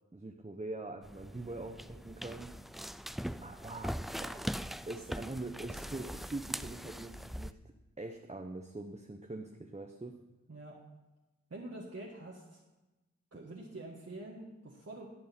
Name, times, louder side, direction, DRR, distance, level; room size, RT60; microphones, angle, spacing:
voice 1, 0.1-2.5 3.4-4.5 4.9-7.6 8.0-10.2, right 2 dB, 25° right, 3 dB, 0.9 m, -43 dB
sound 1, 1.0-7.5, equal, ahead, 0.3 m, -41 dB
voice 2, 11.5-12.6 13.3-15.1, right 2 dB, 55° right, -3 dB, 1.7 m, -46 dB
17.5 x 6.4 x 4.4 m, 1.1 s
wide cardioid pair, 45°, 30 cm